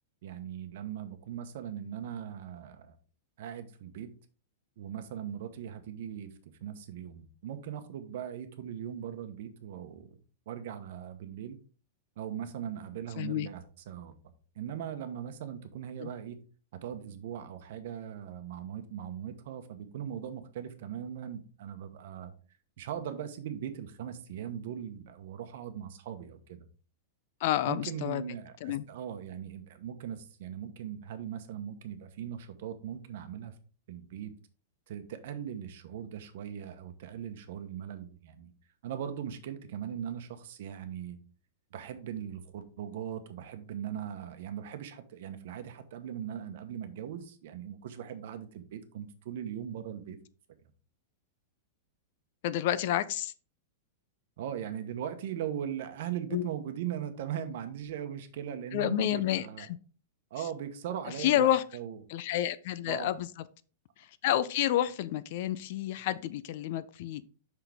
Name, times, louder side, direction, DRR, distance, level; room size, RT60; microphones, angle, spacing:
voice 1, 0.2-2.9 3.4-4.1 4.8-6.3 6.6-10.2 10.5-11.6 12.2-14.1 14.5-16.4 16.8-22.3 22.8-26.7 27.7-33.5 33.9-34.3 34.9-38.5 38.8-41.2 41.7-50.2 50.5-50.6 54.4-59.7 60.3-62.0 62.9-63.2, right 9 dB, 55° right, 9 dB, 1.0 m, -39 dB
voice 2, 13.2-13.5 16.0-16.1 27.4-28.2 28.6-28.8 52.4-53.3 56.3-56.5 58.7-59.7 61.2-61.6 62.1-63.3 64.0-67.2, left 12 dB, 45° left, 16 dB, 0.4 m, -29 dB
6.1 x 5.8 x 3.4 m, 0.38 s
supercardioid pair, 170°, 0 cm